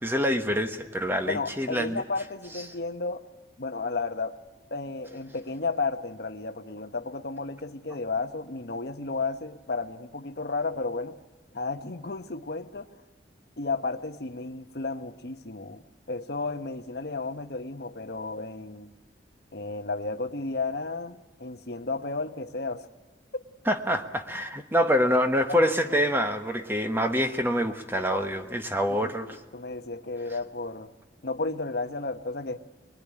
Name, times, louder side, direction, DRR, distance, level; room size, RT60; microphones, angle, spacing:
voice 1, 0.0-2.0 23.7-29.4, equal, 10° right, 7 dB, 1.2 m, -26 dB
voice 2, 1.2-3.3 3.6-4.4 4.7-11.2 11.5-12.9 13.6-15.8 16.1-18.9 19.5-22.9 23.3-23.4 25.5-26.1 29.0-30.9 31.2-32.6, left 3 dB, 60° left, 8 dB, 1.0 m, -33 dB
22.5 x 21.5 x 9.9 m, 1.2 s
head